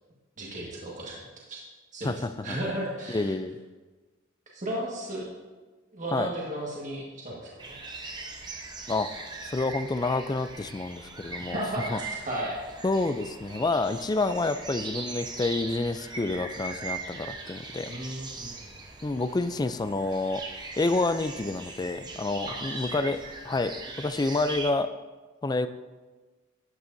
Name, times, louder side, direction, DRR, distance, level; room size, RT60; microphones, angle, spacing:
voice 1, 0.4-1.6 1.9-3.3 4.5-5.3 5.9-7.8 11.4-12.6 17.9-18.6 22.5-22.9, right 1 dB, 40° right, -4 dB, 1.6 m, -35 dB
voice 2, 2.0-2.6 3.1-3.6 6.1-6.3 8.9-9.1 9.4-11.6 11.9-12.0 12.8-17.9 19.0-20.4 20.8-23.2 23.4-23.7 24.0-24.9 25.4-25.7, left 3 dB, 20° left, 11 dB, 0.3 m, -28 dB
sound 1, 7.6-24.7, right 3 dB, 20° right, 0.9 m, -40 dB
12.5 x 8.9 x 2.7 m, 1.3 s
head